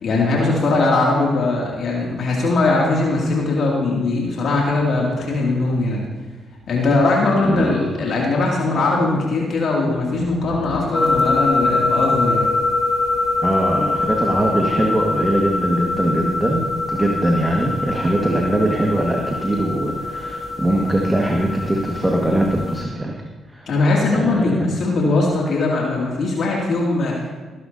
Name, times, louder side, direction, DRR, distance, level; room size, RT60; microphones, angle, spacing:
voice 1, 0.0-6.1 6.7-12.5 23.7-27.2, left 2 dB, 60° left, -3 dB, 2.6 m, -20 dB
voice 2, 7.4-7.8 13.4-23.2 23.5-23.8 24.1-24.6, right 1 dB, 15° right, 0 dB, 1.8 m, -21 dB
sound 1, 9.9-15.7, left 6 dB, 85° left, 1.1 m, -40 dB
sound 2, 10.9-22.8, left 3 dB, 25° left, 3.9 m, -23 dB
19.0 x 10.5 x 2.8 m, 1.4 s
hypercardioid pair, 45°, 0 cm